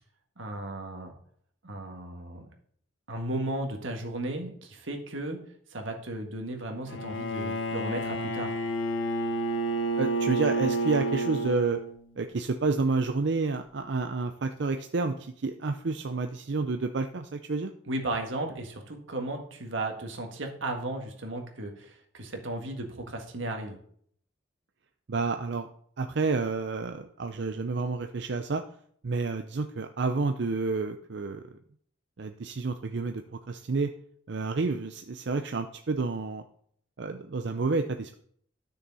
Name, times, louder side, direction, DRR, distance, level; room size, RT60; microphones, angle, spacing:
voice 1, 0.4-1.1 1.6-2.5 3.1-5.4 5.7-8.7 17.9-23.8, right 1 dB, 90° right, 3 dB, 1.8 m, -35 dB
Bowed string instrument, 6.9-12.1, right 2 dB, 85° left, 1.2 m, -30 dB
voice 2, 10.0-11.8 12.2-17.7 25.1-25.7 26.0-28.6 29.0-31.4 32.2-33.9 34.3-36.4 37.0-38.2, right 3 dB, 65° right, 7 dB, 0.5 m, -29 dB
12.0 x 6.5 x 4.1 m, 0.62 s
head